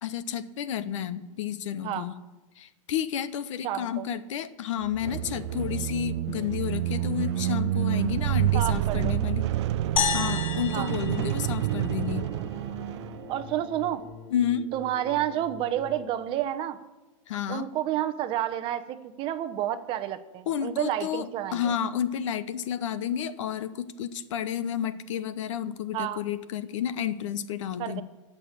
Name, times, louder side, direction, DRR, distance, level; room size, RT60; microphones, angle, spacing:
voice 1, 0.0-2.1 2.6-9.5 10.1-12.3 14.3-14.7 17.3-17.7 20.5-28.0, left 9 dB, 65° left, 14 dB, 1.0 m, -31 dB
voice 2, 3.6-4.0 8.5-9.1 10.7-10.9 13.3-14.0 14.7-16.8 17.5-21.7 25.9-26.2 27.8-28.0, right 12 dB, 30° right, 11 dB, 0.8 m, -30 dB
sound 1, 4.8-13.6, right 15 dB, 55° right, 0.5 m, -28 dB
sound 2, 5.0-8.4 11.4-16.4, left 5 dB, 20° left, 1.1 m, -46 dB
sound 3, 10.0-12.4, left 6 dB, 90° left, 1.6 m, -31 dB
18.0 x 6.8 x 7.4 m, 1.1 s
hypercardioid pair, 145°, 17 cm